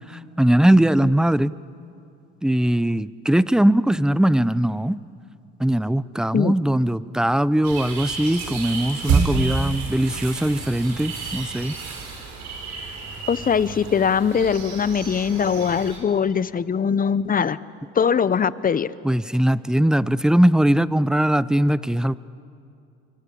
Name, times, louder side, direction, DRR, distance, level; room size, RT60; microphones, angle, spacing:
voice 1, 0.1-1.5 2.4-5.0 5.6-11.8 19.0-22.2, right 1 dB, ahead, 18 dB, 0.6 m, -20 dB
sound 1, 7.6-16.0, right 4 dB, 65° right, 5.1 m, -29 dB
voice 2, 13.3-17.6 17.9-18.9, left 7 dB, 30° left, 17 dB, 0.9 m, -21 dB
28.0 x 24.5 x 8.5 m, 2.5 s
supercardioid pair, 85°, 30 cm